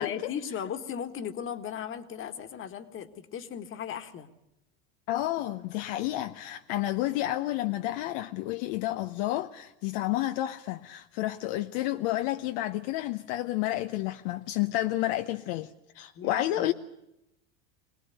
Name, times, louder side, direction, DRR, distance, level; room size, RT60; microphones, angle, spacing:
voice 1, 0.0-4.3 16.1-16.7, left 8 dB, 40° left, 1.7 m, -37 dB
voice 2, 5.1-16.7, left 15 dB, 70° left, 0.8 m, -30 dB
22.5 x 18.5 x 9.4 m
supercardioid pair, 115°, 32 cm